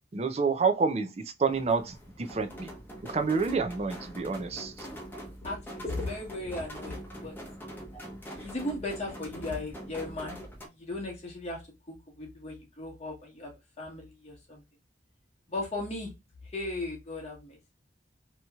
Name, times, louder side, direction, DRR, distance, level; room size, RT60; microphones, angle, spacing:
voice 1, 0.1-2.7 3.0-4.9, right 4 dB, 35° right, 0.4 m, -28 dB
sound 1, 1.5-10.7, equal, 10° left, 0.8 m, -43 dB
voice 2, 5.4-7.4 7.9-8.0 8.4-10.4 10.8-11.6 11.9-13.5 13.8-14.6 15.5-16.1 16.5-17.6, left 2 dB, 35° left, 1.0 m, -36 dB
2.9 x 2.8 x 2.3 m
head